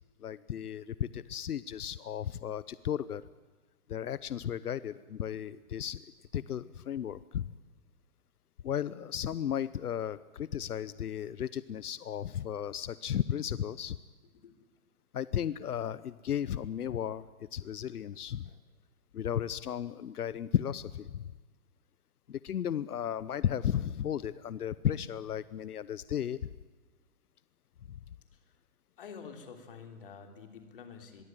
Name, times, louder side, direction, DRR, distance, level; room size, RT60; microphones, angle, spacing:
voice 1, 0.2-3.2 3.9-6.1 6.3-7.5 8.6-14.0 15.1-18.5 19.1-21.2 22.3-26.5, left 9 dB, 85° left, 17 dB, 0.9 m, -34 dB
voice 2, 29.0-31.2, left 6 dB, 35° left, 5 dB, 3.4 m, -48 dB
24.5 x 22.5 x 9.1 m, 1.4 s
hypercardioid pair, 180°, 45 cm